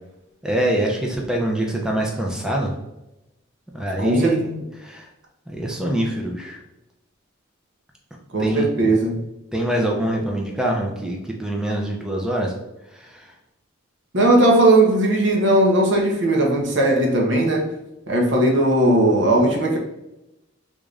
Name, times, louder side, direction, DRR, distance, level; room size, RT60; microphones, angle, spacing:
voice 1, 0.4-2.7 3.7-5.1 5.5-6.6 8.4-8.9 9.5-12.5 12.9-13.3, right 1 dB, 5° right, -1 dB, 0.5 m, -25 dB
voice 2, 4.0-4.4 8.3-9.2 14.1-17.7 18.1-19.8, right 1 dB, 60° right, 0 dB, 0.8 m, -17 dB
3.5 x 2.6 x 3.2 m, 0.92 s
head